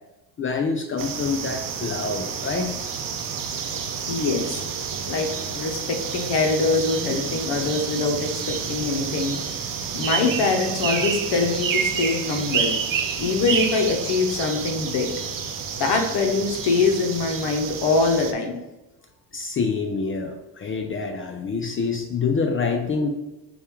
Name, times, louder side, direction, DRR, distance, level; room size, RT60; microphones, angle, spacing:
voice 1, 0.4-2.7 19.3-23.1, left 4 dB, 30° left, 4 dB, 0.4 m, -26 dB
sound 1, 1.0-18.3, right 6 dB, 45° right, 0.7 m, -29 dB
voice 2, 4.1-4.6 5.1-5.3 5.5-9.4 9.9-12.8 13.2-15.1 15.8-18.6, left 3 dB, 65° left, 2 dB, 0.8 m, -23 dB
6.7 x 2.3 x 3.0 m, 1.0 s
cardioid pair, 100°, 44 cm